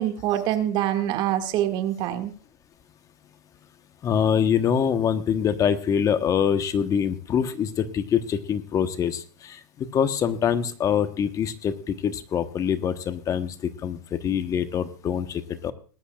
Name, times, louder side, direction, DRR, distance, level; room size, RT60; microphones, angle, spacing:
voice 1, 0.0-2.3, right 12 dB, 50° right, 7 dB, 2.2 m, -25 dB
voice 2, 4.0-13.5 13.8-15.7, left 8 dB, 30° left, 9 dB, 1.2 m, -24 dB
21.0 x 11.5 x 2.5 m, 0.39 s
hypercardioid pair, 105°, 11 cm